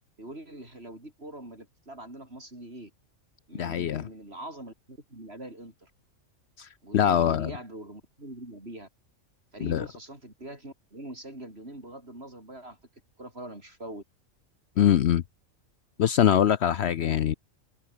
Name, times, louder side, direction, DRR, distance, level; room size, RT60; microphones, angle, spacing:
voice 1, 0.2-2.9 3.5-5.9 6.8-8.9 9.5-12.8 13.2-14.0, right 1 dB, 50° right, 7.9 m, -43 dB
voice 2, 3.6-4.1 6.6-6.7 6.9-7.5 9.6-9.8 14.8-15.2 16.0-17.3, left 10 dB, 60° left, 0.9 m, -23 dB
omnidirectional pair, 1.3 m